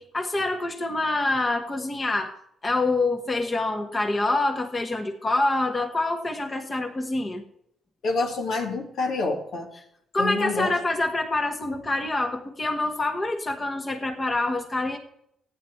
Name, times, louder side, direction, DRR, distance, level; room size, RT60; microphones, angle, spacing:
voice 1, 0.0-2.4 2.6-7.4 10.1-15.0, left 2 dB, 25° left, 4 dB, 1.5 m, -26 dB
voice 2, 8.0-9.7 10.2-10.7, left 3 dB, 70° left, 1 dB, 2.3 m, -27 dB
14.5 x 9.7 x 4.6 m, 0.72 s
cardioid pair, 90°, 0 cm